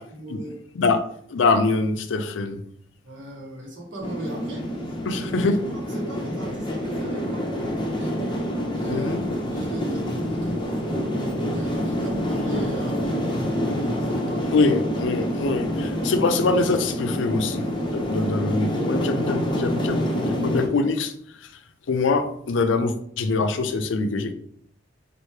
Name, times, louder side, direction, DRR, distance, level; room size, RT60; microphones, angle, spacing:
voice 1, 0.1-0.8 3.0-5.4 5.7-8.1 8.6-9.1 9.3-14.5, right 1 dB, 80° right, -1 dB, 1.2 m, -37 dB
voice 2, 1.3-2.6 5.0-5.6 8.9-9.2 14.5-17.6 17.9-21.1 21.9-24.3, left 3 dB, 80° left, 8 dB, 0.4 m, -23 dB
sound 1, 4.0-20.7, equal, 25° left, 0.7 m, -27 dB
3.2 x 2.6 x 4.3 m, 0.67 s
head